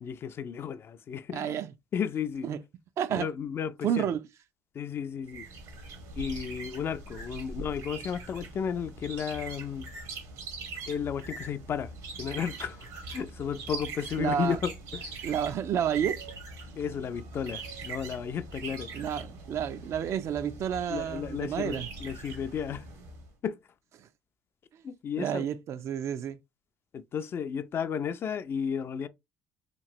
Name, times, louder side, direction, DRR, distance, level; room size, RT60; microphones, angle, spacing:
voice 1, 0.0-1.5 1.9-2.5 3.2-4.1 4.8-5.5 6.2-9.9 10.9-11.9 12.2-15.1 16.8-18.9 20.9-22.8 23.4-23.5 24.8-25.4 26.9-29.1, left 7 dB, 45° left, 0.3 m, -33 dB
voice 2, 1.3-1.7 2.4-2.6 3.0-3.3 3.8-4.3 14.2-14.6 15.2-16.2 18.9-21.9 24.0-24.1 25.2-26.4, right 9 dB, 55° right, 0.3 m, -30 dB
sound 1, 5.3-23.3, right 3 dB, 75° right, 1.2 m, -42 dB
3.0 x 2.8 x 2.4 m
cardioid pair, 95°, 6 cm